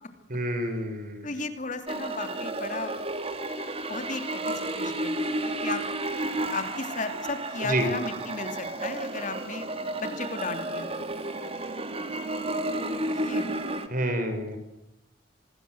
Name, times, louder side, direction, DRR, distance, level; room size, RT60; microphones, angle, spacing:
voice 1, 0.3-1.3 7.6-7.9 13.9-14.6, right 1 dB, 50° right, 7 dB, 6.5 m, -28 dB
voice 2, 1.2-2.9 3.9-5.8 6.5-9.7 10.0-11.1 12.6-13.6, left 3 dB, 45° left, 7 dB, 3.1 m, -35 dB
sound 1, 1.9-13.9, right 1 dB, 30° right, 2.3 m, -32 dB
26.0 x 20.5 x 8.0 m, 0.82 s
head